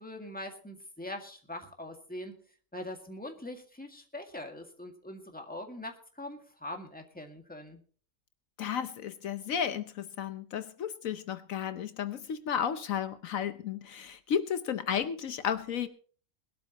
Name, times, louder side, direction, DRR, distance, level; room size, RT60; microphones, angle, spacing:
voice 1, 0.0-2.4 2.7-7.8, left 1 dB, 5° left, 3 dB, 1.9 m, -42 dB
voice 2, 8.6-15.9, left 8 dB, 75° left, 11 dB, 1.2 m, -33 dB
21.0 x 12.5 x 3.0 m, 0.42 s
omnidirectional pair, 1.5 m